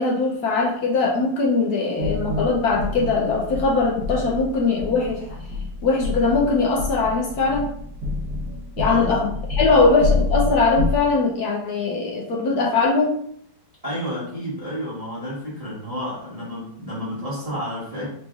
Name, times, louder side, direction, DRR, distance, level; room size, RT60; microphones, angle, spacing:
voice 1, 0.0-5.4 5.8-7.7 8.8-13.1, left 3 dB, 65° left, -1 dB, 1.1 m, -21 dB
sound 1, 2.0-11.0, left 3 dB, 55° right, 1.7 m, -27 dB
voice 2, 8.8-9.3 9.6-9.8 13.8-18.1, equal, 20° right, -9 dB, 1.3 m, -30 dB
4.0 x 3.1 x 3.5 m, 0.65 s
omnidirectional pair, 2.2 m